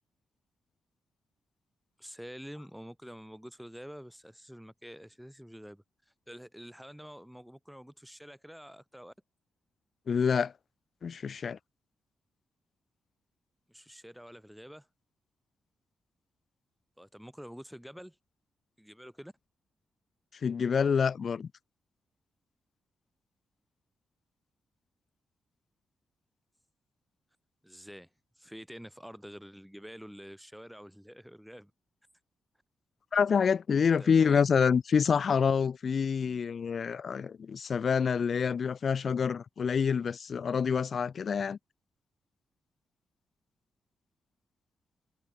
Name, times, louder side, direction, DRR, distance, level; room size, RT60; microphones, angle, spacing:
voice 1, 2.0-5.8 6.3-9.1 13.7-14.9 17.0-18.2 18.8-19.3 27.6-28.1 28.4-31.7 34.0-34.5, equal, ahead, 6.5 m, -47 dB
voice 2, 10.1-10.5 11.0-11.6 20.4-21.5 33.1-41.6, left 6 dB, 50° left, 0.8 m, -27 dB
cardioid pair, 110°, 0 cm